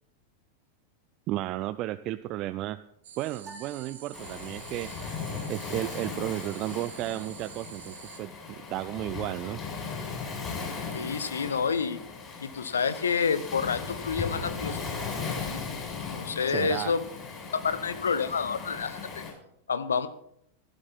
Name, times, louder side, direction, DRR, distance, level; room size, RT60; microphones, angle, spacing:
voice 1, 1.3-2.8 3.2-4.9 5.5-9.6 16.5-16.9, right 15 dB, 40° right, 13 dB, 0.4 m, -33 dB
sound 1, 3.0-8.2, right 8 dB, 60° right, 1.8 m, -47 dB
sound 2, 3.4-4.9, right 1 dB, 20° right, 2.6 m, -51 dB
Waves surf, 4.1-19.3, left 5 dB, 20° left, 6.7 m, -37 dB
voice 2, 10.9-12.0 12.4-14.8 16.1-17.0 17.5-19.0 19.7-20.1, left 6 dB, 70° left, 13 dB, 0.9 m, -28 dB
15.0 x 12.5 x 4.2 m, 0.73 s
figure-of-eight pair, 90°, 0 cm